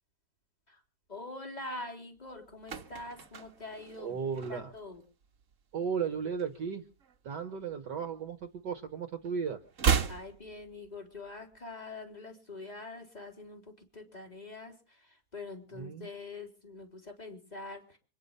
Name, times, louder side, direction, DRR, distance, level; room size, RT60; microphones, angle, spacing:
voice 1, 1.1-4.2 4.5-5.0 10.1-18.0, left 2 dB, 20° left, 2 dB, 3.7 m, -44 dB
sound 1, 2.3-5.0 5.2-5.5 5.8-7.3 7.6-8.9 9.2-11.3 11.5-11.6, right 6 dB, 45° right, 1.5 m, -34 dB
voice 2, 4.0-4.7 5.7-6.9 7.2-9.6 15.7-16.1, right 6 dB, 60° right, 8 dB, 1.8 m, -35 dB
25.0 x 10.0 x 5.5 m, 0.40 s
omnidirectional pair, 2.2 m